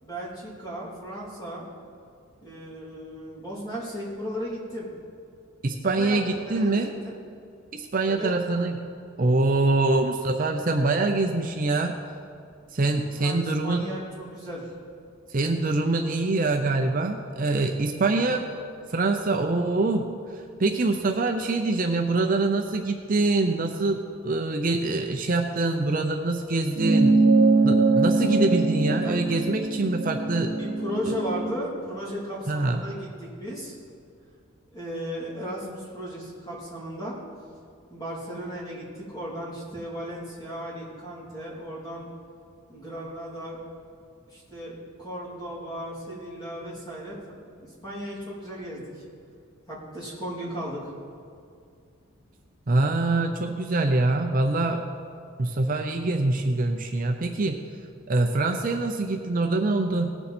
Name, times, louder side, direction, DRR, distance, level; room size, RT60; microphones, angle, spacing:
voice 1, 0.0-1.7 2.4-4.9 5.8-7.2 8.1-8.4 13.1-14.7 29.0-29.2 30.6-33.8 34.7-37.2 37.9-42.1 42.7-43.6 44.3-47.2 47.6-49.0 49.7-50.9, equal, 20° left, -6 dB, 3.1 m, -35 dB
voice 2, 5.6-6.9 7.7-8.8 9.2-12.0 12.7-13.8 15.3-18.4 18.9-20.1 20.6-27.2 27.6-30.5 31.1-31.2 32.5-32.8 52.7-54.8 55.4-57.6 58.1-60.2, right 2 dB, 40° right, 4 dB, 0.6 m, -24 dB
sound 1, 26.8-31.5, right 3 dB, 90° right, 0.9 m, -22 dB
18.5 x 7.0 x 4.3 m, 2.3 s
head